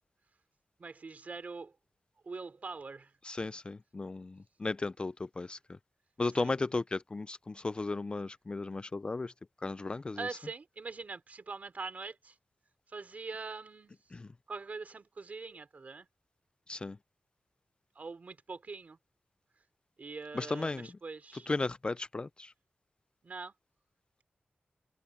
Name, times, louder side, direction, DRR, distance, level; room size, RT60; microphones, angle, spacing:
voice 1, 0.8-1.7 2.3-3.1 6.4-6.5 10.2-12.3 12.9-14.0 14.5-16.1 18.0-19.0 20.0-21.5 23.2-23.5, right 4 dB, 45° right, 3.6 m, -43 dB
voice 2, 3.2-5.6 6.2-9.3 9.6-10.3 14.1-14.3 16.7-17.0 20.3-20.9 21.5-22.5, left 3 dB, 30° left, 0.3 m, -35 dB
wide cardioid pair, 145°, 4 cm